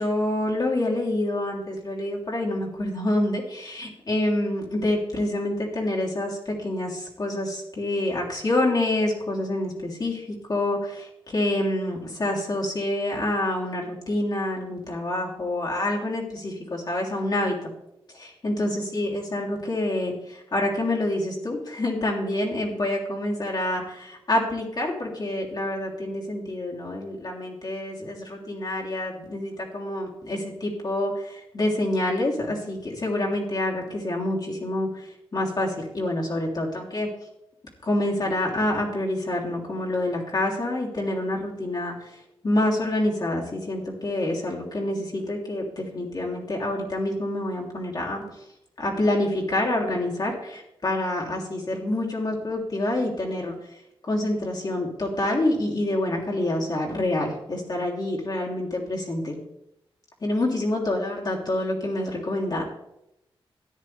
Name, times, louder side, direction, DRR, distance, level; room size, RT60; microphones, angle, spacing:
voice 1, 0.0-17.7 18.1-37.1 37.8-48.2 48.8-53.5 54.0-59.4 60.2-62.6, left 1 dB, 45° left, -2 dB, 3.2 m, -27 dB
14.0 x 9.9 x 3.4 m, 0.85 s
cardioid pair, 80°, 10 cm